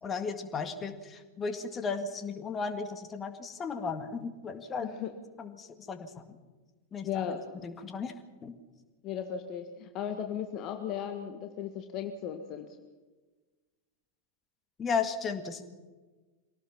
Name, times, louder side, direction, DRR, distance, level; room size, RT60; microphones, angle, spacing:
voice 1, 0.0-4.9 5.4-6.1 6.9-7.4 7.6-8.1 8.4-8.5 14.8-15.6, left 5 dB, 20° left, 7 dB, 2.0 m, -35 dB
voice 2, 4.8-5.1 7.0-7.4 9.0-12.7, left 8 dB, 35° left, 5 dB, 1.6 m, -36 dB
24.5 x 18.0 x 6.0 m, 1.3 s
figure-of-eight pair, 90°, 0 cm